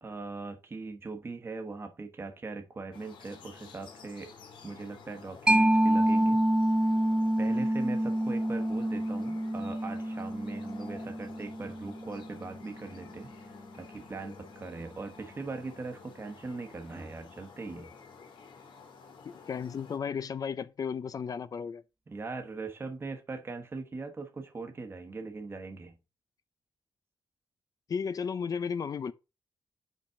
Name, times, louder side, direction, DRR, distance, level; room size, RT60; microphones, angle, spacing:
voice 1, 0.0-4.3 4.6-6.4 6.8-6.9 7.4-13.3 13.7-17.9 22.1-26.0, right 3 dB, 30° right, 1.2 m, -40 dB
sound 1, 2.9-20.0, left 5 dB, 80° left, 2.2 m, -51 dB
Mallet percussion, 5.5-12.7, right 1 dB, 10° right, 0.6 m, -27 dB
voice 2, 19.2-21.8 27.9-29.1, left 6 dB, 50° left, 0.5 m, -34 dB
5.5 x 5.1 x 5.6 m
wide cardioid pair, 120°, 8 cm